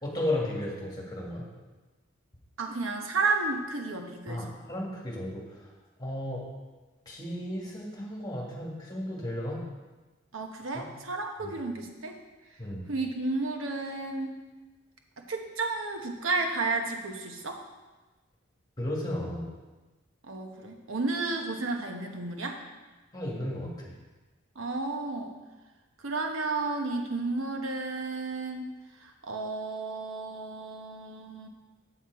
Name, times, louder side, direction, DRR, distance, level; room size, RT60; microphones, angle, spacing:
voice 1, 0.0-1.5 4.3-5.6 6.0-6.4 7.1-9.6 10.7-10.8 11.4-11.5 12.6-12.8 18.8-19.5 23.1-23.9, left 1 dB, 20° left, -3 dB, 2.0 m, -34 dB
voice 2, 2.6-4.5 10.3-12.2 12.9-14.4 15.2-17.6 20.3-22.6 24.5-25.3 26.0-28.7 29.0-31.5, right 3 dB, 80° right, 3 dB, 1.1 m, -32 dB
8.0 x 7.7 x 4.7 m, 1.2 s
head